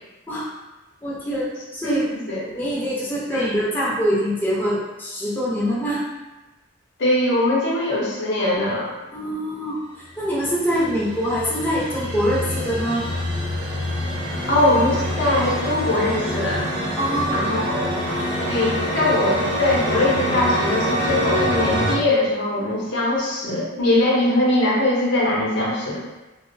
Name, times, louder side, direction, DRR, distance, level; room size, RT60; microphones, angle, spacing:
voice 1, 1.0-2.1 2.4-6.0 9.1-9.8 10.2-13.1 17.0-17.5 18.1-18.4, equal, 10° left, -8 dB, 0.5 m, -24 dB
voice 2, 2.0-2.4 3.3-3.6 7.0-8.9 14.5-16.7 17.3-17.9 18.4-26.0, left 1 dB, 65° left, -4 dB, 0.6 m, -21 dB
sound 1, 10.4-22.0, equal, 25° right, 0.8 m, -25 dB
2.8 x 2.0 x 2.5 m, 1.1 s
head